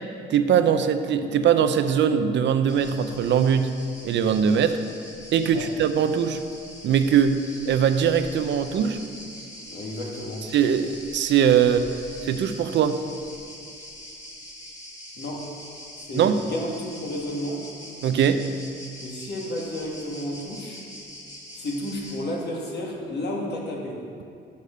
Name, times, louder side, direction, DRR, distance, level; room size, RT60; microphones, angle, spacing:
voice 1, 0.3-3.7 4.0-4.8 5.3-6.4 6.8-7.4 7.7-9.0 10.5-11.8 12.2-13.0 16.1-16.4 18.0-18.4, right 8 dB, 65° right, 9 dB, 0.6 m, -21 dB
sound 1, 2.7-22.2, equal, 15° left, 2.4 m, -43 dB
voice 2, 9.7-10.5 15.2-15.5 16.0-17.7 19.0-20.8 21.5-24.0, left 1 dB, 60° left, -1 dB, 1.9 m, -32 dB
7.0 x 6.6 x 6.6 m, 2.5 s
cardioid pair, 90°, 20 cm